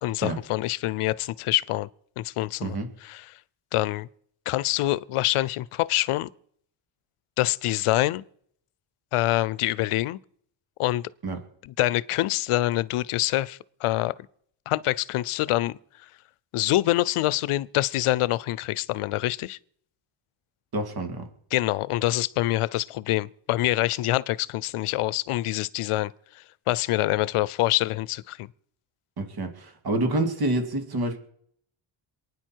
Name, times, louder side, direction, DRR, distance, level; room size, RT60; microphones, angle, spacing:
voice 1, 0.0-1.9 2.2-2.8 3.0-3.2 3.7-4.1 4.5-6.3 7.4-8.2 9.1-10.2 10.8-11.1 11.6-14.1 14.7-15.8 16.5-19.6 21.5-26.1 26.7-28.5, left 16 dB, 90° left, 0.6 m, -25 dB
voice 2, 20.7-21.2 29.2-31.2, right 2 dB, 50° right, 2.6 m, -27 dB
27.5 x 9.7 x 4.6 m
cardioid pair, 125°, 49 cm